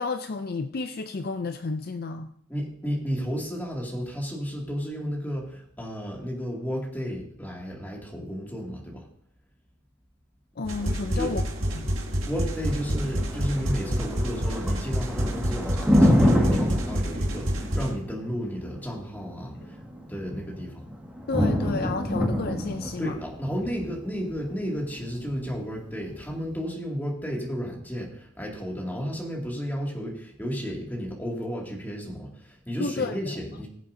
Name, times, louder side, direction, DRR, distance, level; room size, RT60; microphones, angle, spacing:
voice 1, 0.0-2.3 10.6-11.4 11.7-11.9 21.3-23.2 32.8-33.2, left 4 dB, 50° left, 9 dB, 0.5 m, -31 dB
voice 2, 2.5-9.0 11.1-11.3 12.3-19.8 20.1-20.8 23.0-33.7, equal, 10° left, -2 dB, 2.4 m, -32 dB
sound 1, 10.6-17.9, equal, 85° right, 2.1 m, -28 dB
Thunder, 12.5-26.5, equal, 5° right, 1.8 m, -27 dB
20.0 x 7.4 x 2.7 m, 0.66 s
head